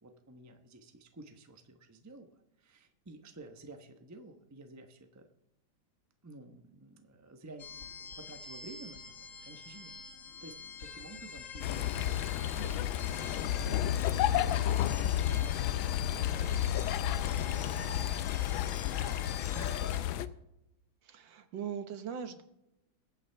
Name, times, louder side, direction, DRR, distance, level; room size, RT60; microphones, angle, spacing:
voice 1, 0.0-2.3 2.6-5.3 6.2-9.1 9.4-9.9 10.4-10.5 10.8-12.8 13.1-13.8 14.3-20.0, right 2 dB, 20° right, 5 dB, 0.5 m, -52 dB
sound 1, 7.6-20.0, left 6 dB, 50° left, 1.2 m, -45 dB
sound 2, 11.6-20.3, left 12 dB, 85° left, 1.4 m, -31 dB
Drone flutter scifi, 11.7-18.5, left 3 dB, 5° left, 5.4 m, -50 dB
voice 2, 21.0-22.4, right 7 dB, 70° right, 9 dB, 1.7 m, -40 dB
21.5 x 8.5 x 3.4 m, 0.86 s
omnidirectional pair, 2.2 m